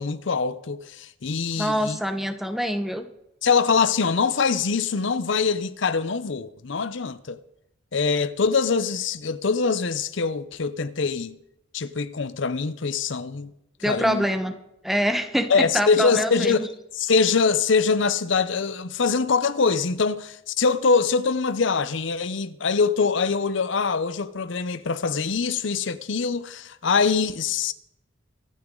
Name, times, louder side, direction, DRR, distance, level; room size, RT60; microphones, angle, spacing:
voice 1, 0.0-2.0 3.4-7.4 7.9-11.4 11.7-13.5 13.8-14.2 15.5-16.7 16.9-27.7, left 5 dB, 65° left, 0.7 m, -23 dB
voice 2, 1.6-3.0 13.8-14.5 14.8-16.7, equal, ahead, 1.0 m, -25 dB
24.5 x 9.3 x 3.8 m
head